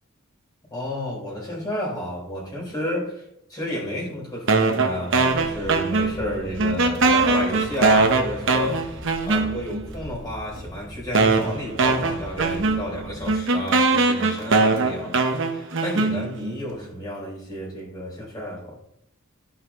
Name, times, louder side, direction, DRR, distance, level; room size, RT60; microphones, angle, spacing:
voice 1, 0.7-3.1 3.5-18.8, left 1 dB, 20° left, -3 dB, 4.0 m, -31 dB
sound 1, 4.5-6.3 6.6-9.8 10.6-10.7 11.1-16.5, right 3 dB, 60° right, 1.1 m, -21 dB
sound 2, 5.3-13.3, equal, 10° right, 2.6 m, -40 dB
14.5 x 5.8 x 3.1 m, 0.77 s
head